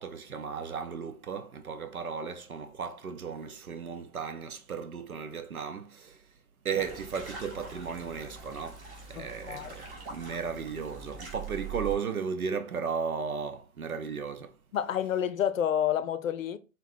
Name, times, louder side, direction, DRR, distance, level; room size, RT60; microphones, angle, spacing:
voice 1, 0.0-6.2 6.6-14.6, right 6 dB, 80° right, 0.7 m, -35 dB
sound 1, 6.8-12.0, right 5 dB, 50° right, 2.0 m, -43 dB
voice 2, 9.1-9.8 14.7-16.6, left 9 dB, 65° left, 0.6 m, -29 dB
3.9 x 3.8 x 2.6 m
figure-of-eight pair, 115°, 43 cm